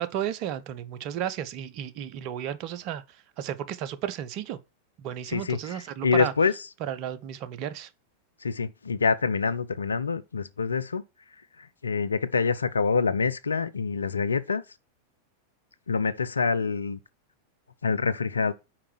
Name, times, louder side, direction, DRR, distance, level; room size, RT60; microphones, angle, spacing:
voice 1, 0.0-3.0 3.4-4.6 5.0-6.3 6.8-7.9, right 10 dB, 40° right, 0.7 m, -33 dB
voice 2, 5.3-6.5 8.4-11.0 11.6-14.6 15.9-17.0 17.8-18.5, left 5 dB, 75° left, 0.5 m, -26 dB
5.9 x 4.8 x 6.2 m
figure-of-eight pair, 90°, 0 cm